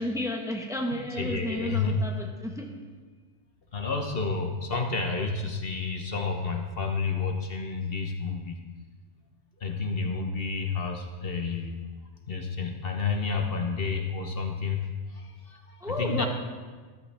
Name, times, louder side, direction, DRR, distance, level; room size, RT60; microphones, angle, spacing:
voice 1, 0.0-2.7 15.8-16.3, left 1 dB, 5° right, 1 dB, 1.1 m, -32 dB
voice 2, 0.9-2.0 3.7-8.6 9.6-11.8 12.3-16.3, left 4 dB, 55° left, 3 dB, 1.2 m, -30 dB
13.5 x 12.5 x 3.4 m, 1.4 s
omnidirectional pair, 1.2 m